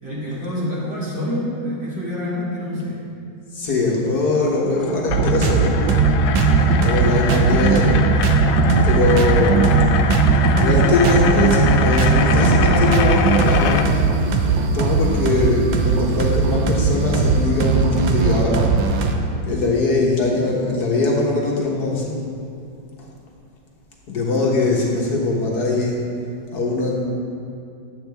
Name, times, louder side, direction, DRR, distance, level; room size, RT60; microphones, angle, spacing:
voice 1, 0.0-3.0, left 1 dB, 35° right, -9 dB, 2.6 m, -27 dB
voice 2, 3.5-5.8 6.3-8.0 8.8-9.7 10.6-14.2 14.5-18.6 19.5-22.2 24.1-26.0 26.5-27.0, left 2 dB, 55° left, -2 dB, 1.6 m, -21 dB
sound 1, 4.4-13.9, left 7 dB, 85° left, 1.4 m, -25 dB
sound 2, 5.1-19.1, right 4 dB, 70° right, 1.4 m, -18 dB
11.0 x 8.3 x 3.5 m, 2.5 s
omnidirectional pair, 2.2 m